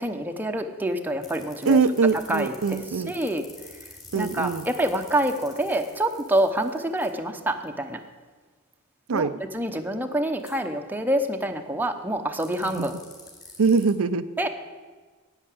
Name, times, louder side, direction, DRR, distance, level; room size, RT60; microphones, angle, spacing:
voice 1, 0.0-1.8 2.3-2.8 3.1-3.4 4.1-8.0 9.1-9.3 9.5-12.9 14.4-14.5, right 1 dB, 10° right, 5 dB, 0.9 m, -26 dB
sound 1, 1.2-7.1 10.4-10.5 12.4-13.9, left 2 dB, 20° left, 3.2 m, -47 dB
voice 2, 1.6-3.1 4.1-4.7 9.1-9.4 12.6-12.9 13.6-14.3, right 4 dB, 75° right, 11 dB, 0.5 m, -23 dB
10.5 x 9.0 x 8.4 m, 1.4 s
head